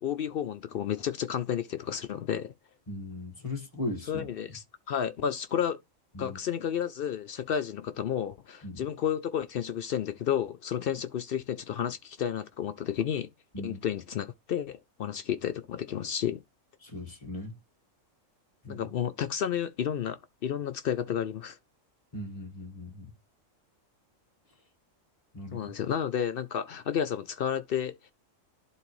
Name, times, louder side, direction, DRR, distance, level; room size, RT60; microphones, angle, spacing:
voice 1, 0.0-2.5 4.1-5.8 6.2-13.3 13.6-16.4 18.7-21.6 25.5-27.9, left 9 dB, 65° left, 0.6 m, -31 dB
voice 2, 2.9-4.3 6.1-6.4 8.6-8.8 13.5-13.8 16.8-17.5 18.6-18.8 22.1-23.1 25.3-25.6, left 2 dB, 25° left, 1.6 m, -38 dB
11.5 x 3.8 x 3.0 m
omnidirectional pair, 1.3 m